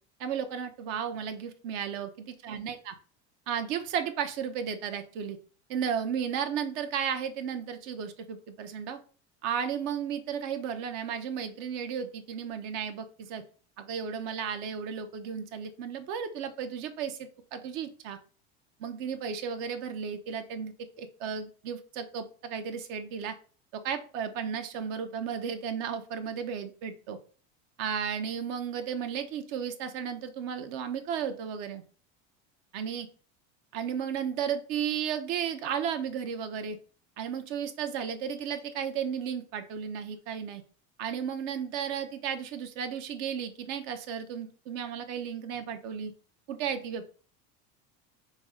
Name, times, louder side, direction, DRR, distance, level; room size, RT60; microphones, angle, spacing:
voice 1, 0.2-2.9 3.5-5.4 5.7-9.0 9.4-13.4 13.8-18.2 18.8-23.3 23.7-27.2 27.8-31.8 32.7-33.1 33.7-36.8 37.2-40.6 41.0-46.1 46.5-47.0, right 7 dB, 70° right, 8 dB, 0.8 m, -34 dB
5.3 x 2.1 x 3.6 m, 0.40 s
supercardioid pair, 120°, 33 cm